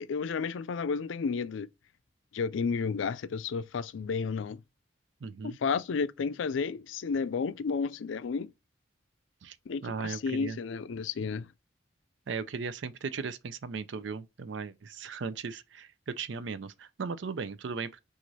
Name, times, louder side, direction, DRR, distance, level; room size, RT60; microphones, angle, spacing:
voice 1, 0.0-1.7 2.3-4.6 5.4-8.5 9.7-11.5, left 5 dB, 75° left, 0.4 m, -32 dB
voice 2, 5.2-5.6 9.4-9.6 9.8-10.6 12.3-18.0, right 5 dB, 70° right, 0.5 m, -37 dB
6.0 x 2.5 x 2.7 m
head